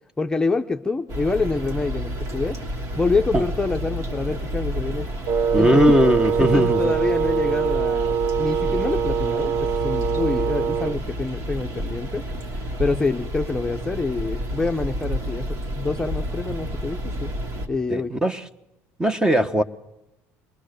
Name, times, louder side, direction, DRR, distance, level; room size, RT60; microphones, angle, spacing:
voice 1, 0.2-2.6 3.0-5.1 5.6-6.0 6.4-12.2 12.8-17.3 17.7-18.1, left 3 dB, 10° left, 0.8 m, -26 dB
sound 1, 1.1-17.7, equal, 60° right, 3.0 m, -30 dB
Wind instrument woodwind instrument, 5.3-11.0, right 7 dB, 80° right, 0.9 m, -23 dB
voice 2, 5.5-6.9 17.9-18.4 19.0-19.6, equal, 10° right, 1.2 m, -19 dB
22.5 x 19.5 x 6.6 m
supercardioid pair, 105°, 6 cm